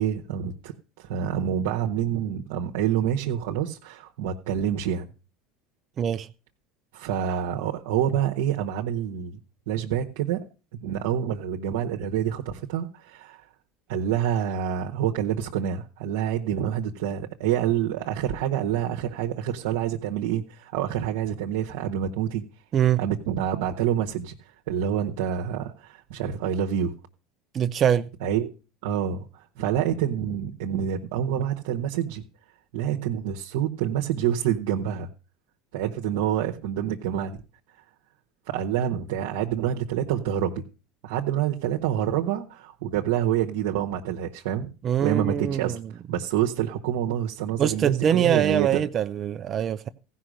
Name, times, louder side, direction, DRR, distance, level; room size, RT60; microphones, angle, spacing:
voice 1, 0.0-5.1 6.9-9.4 9.7-10.4 10.8-13.5 13.9-22.4 23.0-26.9 28.2-28.5 28.8-32.2 32.7-35.1 35.7-37.4 38.5-40.6 41.0-44.7 45.0-48.8, right 10 dB, 80° right, 1.0 m, -27 dB
voice 2, 6.0-6.3 22.7-23.0 27.5-28.1 44.8-45.8 47.6-49.9, right 9 dB, 40° right, 0.5 m, -23 dB
15.0 x 5.7 x 6.3 m
supercardioid pair, 115°, 0 cm